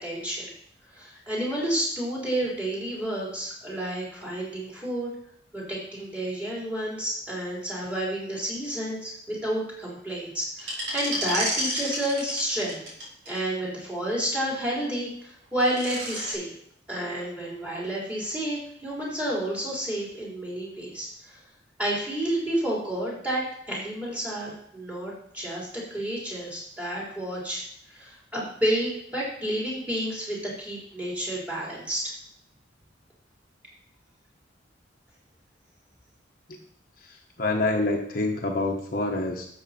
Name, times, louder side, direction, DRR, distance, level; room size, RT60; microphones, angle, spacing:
voice 1, 0.0-0.5 0.9-5.1 5.5-12.8 13.3-16.5 16.9-21.3 21.8-27.6 28.0-32.0, right 1 dB, 10° right, -5 dB, 4.0 m, -30 dB
sound 1, 10.6-13.4 15.4-16.3, equal, 65° right, 5.0 m, -31 dB
voice 2, 37.0-39.5, left 2 dB, 50° left, 1 dB, 1.2 m, -27 dB
12.5 x 7.2 x 4.3 m, 0.68 s
head